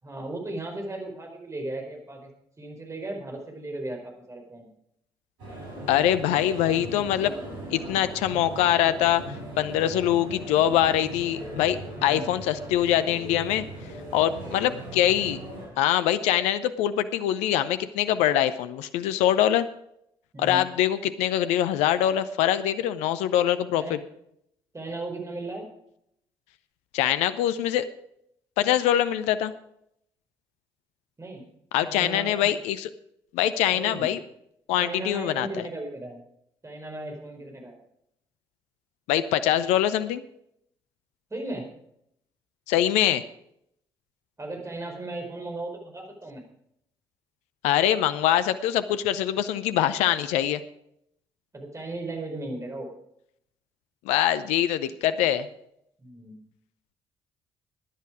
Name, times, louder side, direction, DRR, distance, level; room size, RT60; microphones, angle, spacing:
voice 1, 0.0-2.3 2.6-4.7 12.0-12.3 14.4-14.8 20.3-20.7 23.8-24.0 24.7-25.7 31.2-31.4 31.8-32.5 33.7-34.1 34.8-36.2 36.6-37.8 41.3-41.7 44.4-46.5 51.5-52.9 56.0-56.4, right 2 dB, 25° right, 2 dB, 4.7 m, -36 dB
sound 1, 5.4-15.7, right 1 dB, 80° right, 6.0 m, -39 dB
voice 2, 5.9-7.3 7.7-9.2 9.6-13.7 14.1-15.4 15.8-19.7 20.4-24.0 26.9-27.8 28.6-29.5 31.7-32.9 33.3-34.2 34.7-35.5 39.1-40.2 42.7-43.2 47.6-50.6 54.0-55.5, left 11 dB, 70° left, 13 dB, 0.7 m, -23 dB
16.0 x 10.5 x 4.9 m, 0.75 s
figure-of-eight pair, 45°, 12 cm